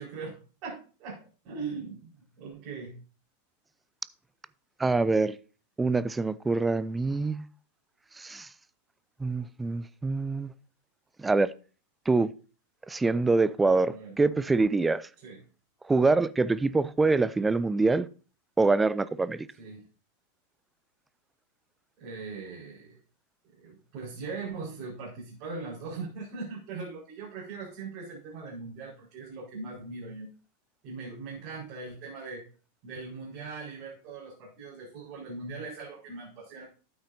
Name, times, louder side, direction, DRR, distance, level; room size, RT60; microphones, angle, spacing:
voice 1, 0.0-2.9 13.9-14.1 15.2-15.4 19.6-19.8 22.0-23.0 23.6-30.3 30.8-32.4 32.8-36.6, right 4 dB, 40° right, 4.8 m, -40 dB
voice 2, 4.8-5.4 5.8-7.4 8.2-8.5 9.2-10.5 11.2-11.5 12.1-12.3 12.9-15.1 15.9-18.1 18.6-19.5, right 3 dB, 10° right, 0.4 m, -25 dB
12.5 x 8.8 x 2.7 m
figure-of-eight pair, 90°, 0 cm